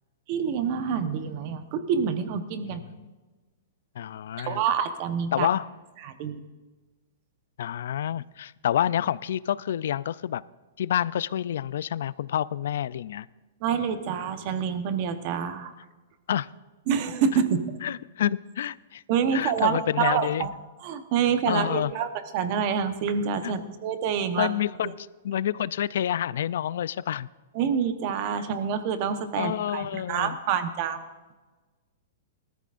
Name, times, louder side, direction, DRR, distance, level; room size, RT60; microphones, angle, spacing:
voice 1, 0.3-2.8 4.5-5.5 6.0-6.4 13.6-15.7 16.9-17.7 19.1-20.5 20.8-24.5 27.5-31.0, right 7 dB, 35° right, 9 dB, 1.0 m, -27 dB
voice 2, 2.6-3.1 4.0-4.6 5.3-5.7 7.6-10.4 10.8-13.3 16.3-16.5 17.8-19.0 19.3-20.5 21.5-21.9 23.4-23.5 24.4-27.3 29.4-30.4, left 10 dB, 65° left, 19 dB, 0.4 m, -28 dB
20.5 x 14.0 x 2.5 m, 1.3 s
hypercardioid pair, 165°, 0 cm